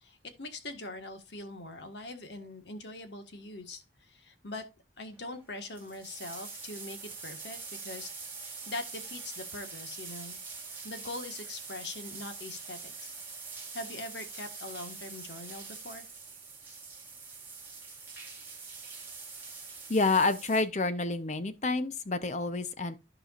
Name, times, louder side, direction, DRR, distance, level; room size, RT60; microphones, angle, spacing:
voice 1, 0.0-4.6 5.0-8.1 8.4-10.4 10.8-13.1 13.4-16.1, left 2 dB, 65° left, 1.5 m, -42 dB
sound 1, 5.5-20.6, right 4 dB, 10° right, 2.0 m, -44 dB
voice 2, 19.9-23.0, left 3 dB, 40° left, 0.8 m, -28 dB
14.5 x 4.8 x 2.5 m
head